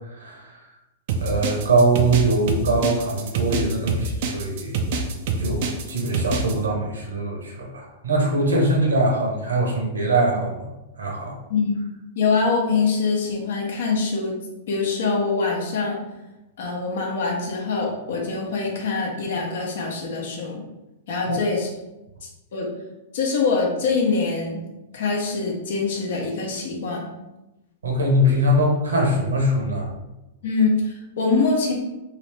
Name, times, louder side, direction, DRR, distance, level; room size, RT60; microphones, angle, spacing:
voice 1, 0.2-0.6 1.2-4.8 5.4-10.6 11.0-11.3 21.3-21.4 27.8-29.9, right 1 dB, 70° right, -1 dB, 1.0 m, -22 dB
sound 1, 1.1-6.5, right 4 dB, 50° right, 0.4 m, -26 dB
voice 2, 12.2-14.4 14.7-16.0 16.6-20.6 21.1-21.7 22.2-22.7 23.1-24.6 24.9-27.1 30.4-31.7, left 4 dB, 55° left, -1 dB, 0.9 m, -24 dB
3.0 x 3.0 x 3.2 m, 0.99 s
figure-of-eight pair, 100°, 0 cm